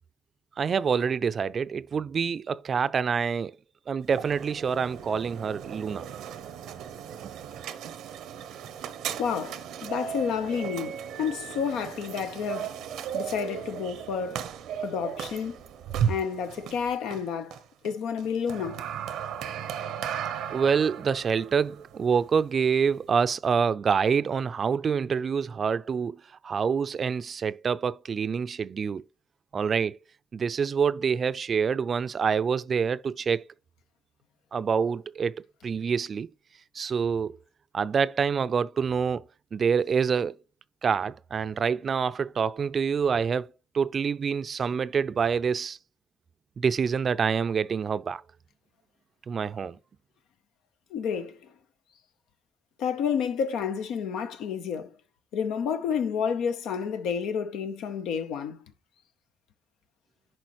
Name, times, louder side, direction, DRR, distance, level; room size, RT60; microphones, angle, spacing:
voice 1, 0.6-3.5 3.9-6.0 20.5-26.2 26.4-29.0 29.5-30.0 30.3-33.4 34.5-36.3 36.7-37.4 37.7-39.2 39.5-40.3 40.8-43.5 43.7-45.8 46.6-48.2 49.3-49.8, right 6 dB, 45° right, 0.4 m, -26 dB
sound 1, 4.0-23.1, right 8 dB, 85° right, 0.7 m, -36 dB
voice 2, 9.2-12.7 13.1-14.5 14.8-15.6 16.1-17.6 17.8-18.8 50.9-51.4 52.8-54.9 55.3-58.6, left 7 dB, 90° left, 0.8 m, -30 dB
10.5 x 4.2 x 3.1 m
cardioid pair, 90°, 0 cm